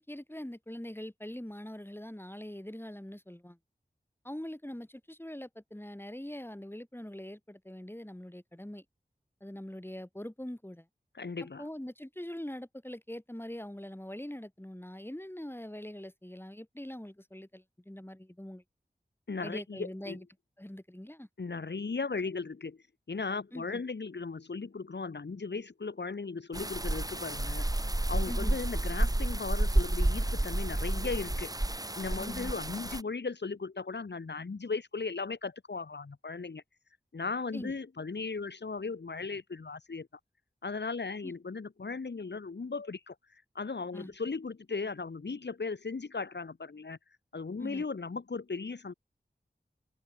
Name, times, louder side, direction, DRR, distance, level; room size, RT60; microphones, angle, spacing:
voice 1, 0.0-3.6 4.2-8.8 9.4-10.9 11.6-18.6 19.4-20.2 20.6-21.3 23.5-23.8 28.3-28.6 32.2-32.5 37.5-37.7 41.2-41.3 43.9-44.1 47.6-47.8, left 1 dB, 15° left, 7.8 m, -43 dB
voice 2, 11.1-11.7 19.3-20.2 21.4-22.8 23.1-27.6 28.1-31.5 31.9-36.6 37.1-40.1 40.6-47.0 47.3-48.9, left 4 dB, 85° left, 3.3 m, -37 dB
sound 1, 26.5-33.0, right 1 dB, 20° right, 1.8 m, -30 dB
open air
cardioid pair, 40°, 17 cm